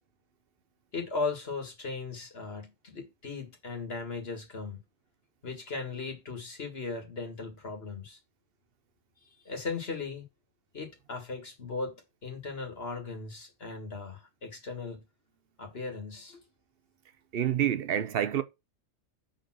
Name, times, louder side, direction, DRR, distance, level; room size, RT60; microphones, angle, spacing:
voice 1, 0.9-4.8 5.4-8.2 9.5-10.2 10.7-15.0 15.6-16.4, left 4 dB, 55° left, 1.9 m, -37 dB
voice 2, 17.3-18.4, right 10 dB, 55° right, 0.8 m, -27 dB
5.0 x 4.4 x 6.0 m
omnidirectional pair, 1.3 m